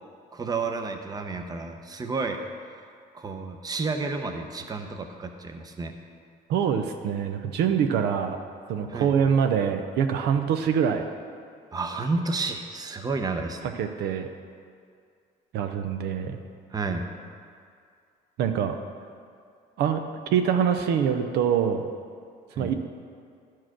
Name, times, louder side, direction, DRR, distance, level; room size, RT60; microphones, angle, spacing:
voice 1, 0.3-2.4 3.1-5.9 8.9-9.1 11.7-13.7 16.7-17.0 22.5-22.7, right 3 dB, 20° right, 5 dB, 0.7 m, -31 dB
voice 2, 6.5-8.4 8.7-11.1 13.8-14.3 15.5-16.4 18.4-18.8 19.8-20.0 20.3-21.9 22.6-22.7, right 7 dB, 75° right, 6 dB, 0.7 m, -24 dB
11.0 x 4.6 x 6.0 m, 2.2 s
cardioid pair, 110°, 17 cm